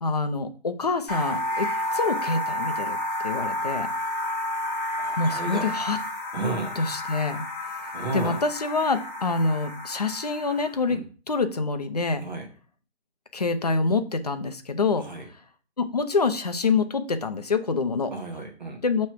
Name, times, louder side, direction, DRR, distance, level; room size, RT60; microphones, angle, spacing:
voice 1, 0.0-3.0 3.2-3.9 5.2-6.0 6.8-7.4 8.1-12.3 13.3-15.1 15.8-18.1 18.8-19.1, left 4 dB, 35° left, 8 dB, 0.6 m, -26 dB
sound 1, 1.1-10.8, left 1 dB, 10° left, 1.0 m, -31 dB
voice 2, 5.0-5.7 6.3-6.7 7.9-8.4 10.9-11.0 12.2-12.5 15.0-15.2 18.1-18.8, right 3 dB, 40° right, 1 dB, 1.2 m, -32 dB
6.4 x 3.2 x 5.6 m, 0.38 s
hypercardioid pair, 175°, 33 cm